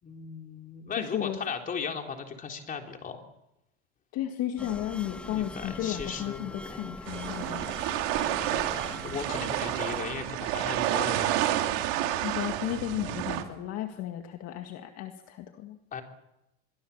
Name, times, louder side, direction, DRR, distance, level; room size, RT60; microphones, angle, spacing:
voice 1, 0.0-3.2 5.3-6.8 8.4-11.3 15.9-16.0, left 6 dB, 25° left, 3 dB, 3.8 m, -37 dB
voice 2, 1.0-1.4 4.1-8.0 12.2-15.8, left 12 dB, 45° left, 5 dB, 2.0 m, -34 dB
sound 1, 4.6-10.0, left 1 dB, 5° left, 1.4 m, -43 dB
sound 2, 7.1-13.4, right 13 dB, 65° right, 3.2 m, -30 dB
25.0 x 23.5 x 7.3 m, 0.89 s
supercardioid pair, 135°, 33 cm